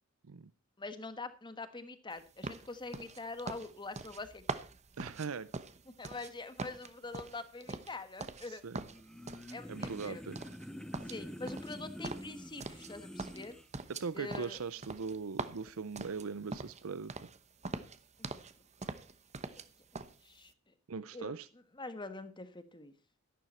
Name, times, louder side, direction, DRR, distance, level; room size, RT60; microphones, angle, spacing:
voice 1, 0.8-4.4 6.0-8.6 9.5-10.2 11.1-13.6 14.1-14.6 18.2-18.4 19.5-19.6 19.9-20.7 21.1-21.4 21.8-22.9, left 3 dB, 20° left, 11 dB, 1.4 m, -44 dB
sound 1, 2.4-6.3 6.6-8.5 8.7-9.5 9.8-10.7 10.9-12.9 13.2-16.8 17.1-17.4 17.6-18.5 18.8-19.7 19.9-20.1, right 3 dB, 35° right, 1.0 m, -42 dB
voice 2, 5.0-5.5 8.5-8.8 9.7-10.4 13.9-17.1 20.9-21.5, right 5 dB, 75° right, 16 dB, 0.6 m, -40 dB
sound 2, 8.8-13.7, equal, 5° left, 0.6 m, -47 dB
12.5 x 11.5 x 4.3 m, 0.33 s
head